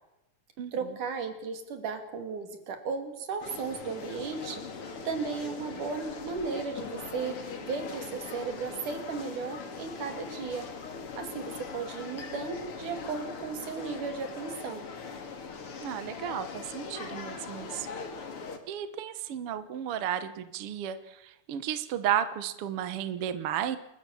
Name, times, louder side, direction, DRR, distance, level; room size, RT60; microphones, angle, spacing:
voice 1, 0.7-4.6 5.1-10.7 11.2-14.9, right 5 dB, 75° right, 7 dB, 4.0 m, -35 dB
sound 1, 3.4-18.6, left 5 dB, 45° left, 2.9 m, -41 dB
voice 2, 15.8-17.9 18.7-23.8, right 10 dB, 60° right, 12 dB, 1.7 m, -33 dB
29.5 x 13.0 x 7.2 m, 0.89 s
omnidirectional pair, 3.6 m